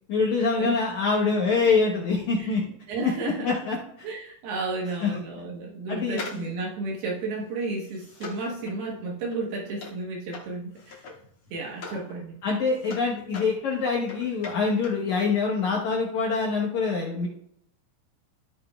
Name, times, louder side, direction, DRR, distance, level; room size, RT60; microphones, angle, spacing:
voice 1, 0.1-2.6 3.0-3.1 3.4-4.1 5.0-5.1 5.9-6.2 11.9-12.0 12.4-17.3, left 4 dB, 70° left, -2 dB, 1.8 m, -25 dB
voice 2, 2.9-3.6 4.0-11.0 11.5-12.4, right 3 dB, 70° right, -2 dB, 3.1 m, -32 dB
sound 1, 6.1-12.1 12.4-15.1 15.3-15.4, left 3 dB, 45° left, 1.8 m, -43 dB
14.0 x 7.6 x 2.3 m, 0.73 s
omnidirectional pair, 4.9 m